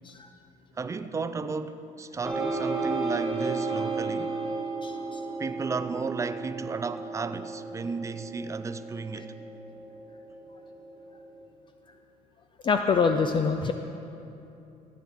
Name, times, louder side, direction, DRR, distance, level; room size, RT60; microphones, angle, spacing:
voice 1, 0.8-4.3 5.4-9.3, right 4 dB, 20° right, 0.4 m, -34 dB
sound 1, 2.2-11.5, right 3 dB, ahead, 1.8 m, -34 dB
voice 2, 4.8-5.2 9.2-9.3 12.6-13.7, left 5 dB, 35° left, 0.5 m, -25 dB
14.5 x 8.6 x 3.7 m
cardioid pair, 100°, 15 cm